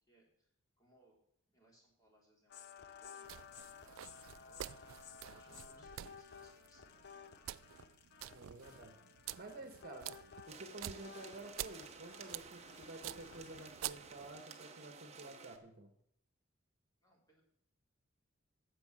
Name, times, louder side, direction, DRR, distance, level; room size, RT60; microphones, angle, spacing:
voice 1, 0.1-0.5 0.8-1.2 1.5-2.5 2.8-4.7 5.3-7.4 17.0-17.4, right 1 dB, 15° left, -2 dB, 3.4 m, -70 dB
sound 1, 2.5-13.7, left 6 dB, 50° left, 0.7 m, -56 dB
sound 2, 3.2-14.4, right 13 dB, 75° right, 0.3 m, -49 dB
voice 2, 5.5-5.9 8.3-9.0 9.4-10.2 10.5-15.9, right 2 dB, 45° right, 5 dB, 1.4 m, -51 dB
sound 3, 10.5-15.6, right 5 dB, 30° right, 0.9 m, -54 dB
9.7 x 7.3 x 7.6 m, 0.72 s
head